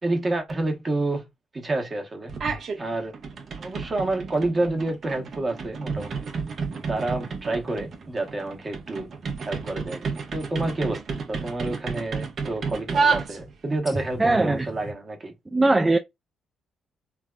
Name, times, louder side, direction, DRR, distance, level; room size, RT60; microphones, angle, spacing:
voice 1, 0.0-1.3 1.5-2.3 2.8-3.1 3.6-6.3 6.9-9.1 9.4-11.0 11.3-15.3, right 2 dB, 30° right, 1.0 m, -29 dB
sound 1, 2.3-2.8 3.1-13.8, right 5 dB, 55° right, 0.8 m, -30 dB
sound 2, 5.9-10.2 10.9-11.0 13.9-14.9, equal, 10° left, 0.7 m, -42 dB
voice 2, 14.2-14.7 15.5-16.0, right 2 dB, 15° right, 0.3 m, -20 dB
3.3 x 2.2 x 2.3 m
cardioid pair, 90°, 0 cm